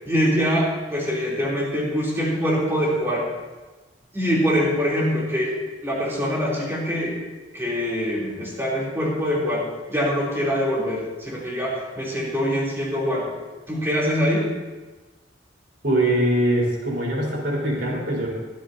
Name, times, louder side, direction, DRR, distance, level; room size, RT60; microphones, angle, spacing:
voice 1, 0.0-3.3 4.1-5.5 5.8-7.2 7.5-13.3 13.7-14.4, equal, 15° right, -5 dB, 3.2 m, -24 dB
voice 2, 15.8-18.3, right 1 dB, 65° right, -4 dB, 4.2 m, -22 dB
24.0 x 8.3 x 2.8 m, 1.2 s
head